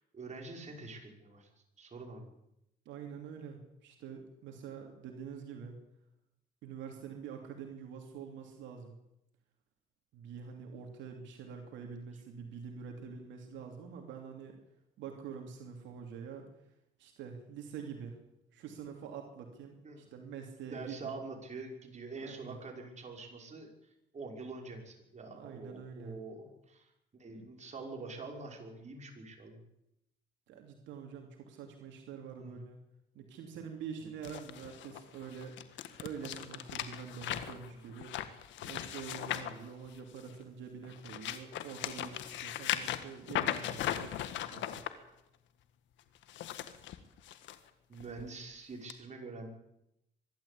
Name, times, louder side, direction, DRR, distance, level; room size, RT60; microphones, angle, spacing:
voice 1, 0.0-1.5 1.8-2.3 19.8-20.3 20.7-23.7 24.1-26.9 27.2-29.6 32.4-32.6 34.0-34.1 37.7-37.8 47.9-49.5, right 3 dB, 40° right, 2 dB, 5.8 m, -45 dB
voice 2, 2.8-5.8 6.6-9.0 10.1-14.6 15.0-16.4 17.0-18.2 18.5-21.2 22.2-22.6 25.3-26.2 30.5-32.8 33.1-35.6 36.0-38.1 38.6-44.8, right 6 dB, 80° right, 3 dB, 2.9 m, -46 dB
sound 1, 34.2-40.4 40.8-44.9 46.1-47.6 48.0-48.2 48.9-49.0, left 12 dB, 80° left, 1.6 m, -38 dB
24.0 x 12.5 x 8.6 m, 0.84 s
cardioid pair, 85°, 19 cm